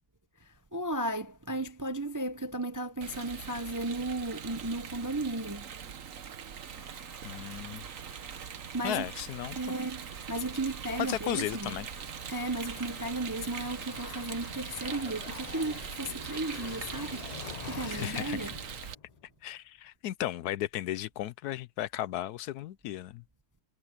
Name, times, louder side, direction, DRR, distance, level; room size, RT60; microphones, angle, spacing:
voice 1, 0.4-5.8 8.4-8.5 8.7-9.1 9.6-11.7 12.3-18.5, right 2 dB, 20° right, 0.5 m, -35 dB
Rain, 3.0-18.9, right 7 dB, 55° right, 1.4 m, -42 dB
sound 1, 6.7-15.0, equal, 10° left, 4.9 m, -56 dB
voice 2, 7.2-7.8 8.8-9.6 11.0-11.9 17.9-18.5 19.4-23.2, left 13 dB, 75° left, 1.1 m, -35 dB
sound 2, 10.0-19.3, left 6 dB, 40° left, 0.5 m, -47 dB
omnidirectional pair, 1.7 m